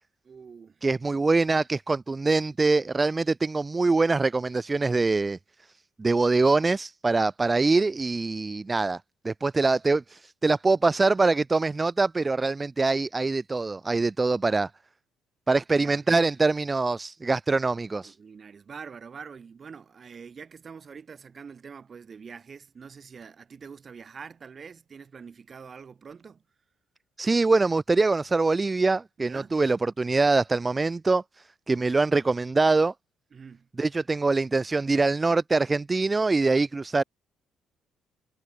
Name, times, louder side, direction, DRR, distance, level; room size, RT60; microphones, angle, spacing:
voice 1, 0.2-0.8 15.7-16.0 18.0-26.4 29.2-29.6 33.3-33.7, right 6 dB, 45° right, 1.7 m, -45 dB
voice 2, 0.8-5.4 6.0-9.0 9.2-14.7 15.5-18.2 27.2-31.2 31.7-32.9 33.8-37.0, right 3 dB, 25° right, 0.3 m, -24 dB
hypercardioid pair, 55°, 0 cm